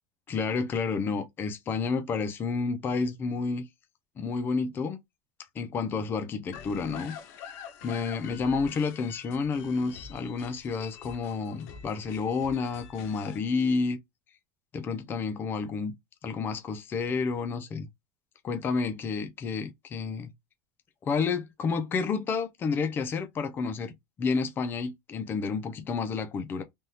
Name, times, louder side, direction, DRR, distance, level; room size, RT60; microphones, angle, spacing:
voice 1, 0.3-3.7 4.2-5.0 5.6-7.2 7.8-14.0 14.7-16.0 16.2-17.9 18.4-20.3 21.0-26.6, left 4 dB, 20° left, 0.5 m, -30 dB
sound 1, 6.5-13.4, left 7 dB, 65° left, 0.8 m, -46 dB
3.5 x 2.3 x 2.7 m
supercardioid pair, 155°, 10 cm